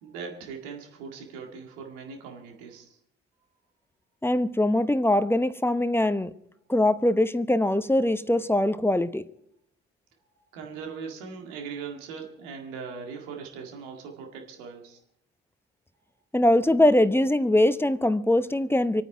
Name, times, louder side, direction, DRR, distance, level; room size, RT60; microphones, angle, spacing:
voice 1, 0.0-3.0 10.5-15.0, right 5 dB, 70° right, 2.0 m, -40 dB
voice 2, 4.2-6.3 6.7-9.2 16.3-19.0, left 1 dB, 5° left, 0.8 m, -22 dB
27.0 x 9.2 x 4.6 m
figure-of-eight pair, 40°, 37 cm